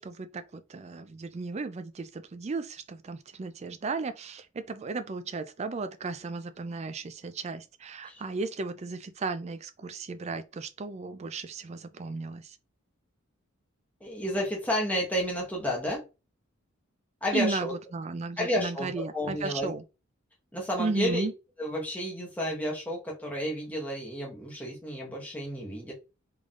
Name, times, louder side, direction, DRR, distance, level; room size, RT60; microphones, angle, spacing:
voice 1, 0.0-12.6 17.3-19.8 20.8-21.3, right 3 dB, 30° right, 0.4 m, -35 dB
voice 2, 14.0-16.0 17.2-17.7 18.4-19.7 20.5-21.2 21.6-25.9, equal, 10° left, 1.1 m, -31 dB
3.8 x 3.5 x 2.4 m
head